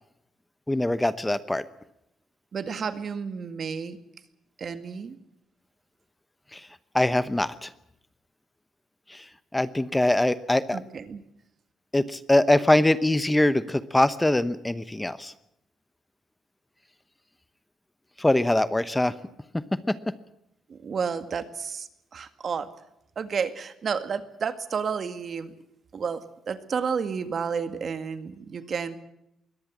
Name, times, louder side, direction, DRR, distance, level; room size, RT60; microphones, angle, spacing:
voice 1, 0.7-1.6 6.5-6.7 6.9-7.7 9.1-9.2 9.5-10.8 11.9-15.3 18.2-19.1 19.5-20.0, left 1 dB, 10° left, 14 dB, 1.0 m, -23 dB
voice 2, 2.5-4.0 4.6-5.2 10.7-11.2 20.7-22.7 23.2-25.5 25.9-29.0, right 6 dB, 50° right, 10 dB, 2.0 m, -31 dB
23.0 x 17.5 x 7.4 m, 0.81 s
cardioid pair, 90°, 0 cm